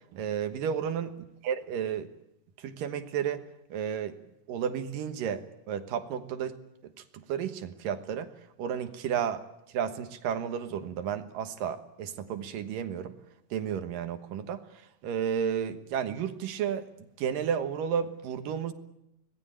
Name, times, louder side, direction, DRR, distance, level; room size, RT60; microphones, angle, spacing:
voice 1, 0.1-1.1 1.4-2.1 2.6-3.4 3.7-4.2 4.5-6.6 7.1-8.3 8.6-9.4 9.7-13.1 13.5-14.6 15.0-16.9 17.2-18.7, right 8 dB, 80° right, 9 dB, 3.0 m, -32 dB
25.5 x 19.5 x 8.8 m, 0.85 s
omnidirectional pair, 3.9 m